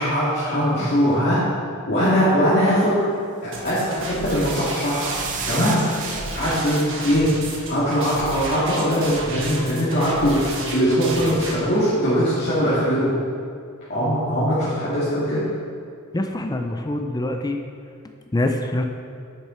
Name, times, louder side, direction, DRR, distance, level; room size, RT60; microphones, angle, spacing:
voice 1, 0.0-1.4 1.9-3.0 3.4-5.2 5.5-5.8 6.3-7.3 7.7-13.1 13.9-15.4, equal, 50° left, -11 dB, 2.2 m, -21 dB
sound 1, 3.5-11.5, right 2 dB, 65° right, 1.4 m, -32 dB
sound 2, 3.7-8.2, right 6 dB, 35° right, 0.6 m, -36 dB
voice 2, 16.1-17.6 18.3-18.8, left 1 dB, 20° left, 5 dB, 0.5 m, -25 dB
10.0 x 6.6 x 4.4 m, 2.3 s
head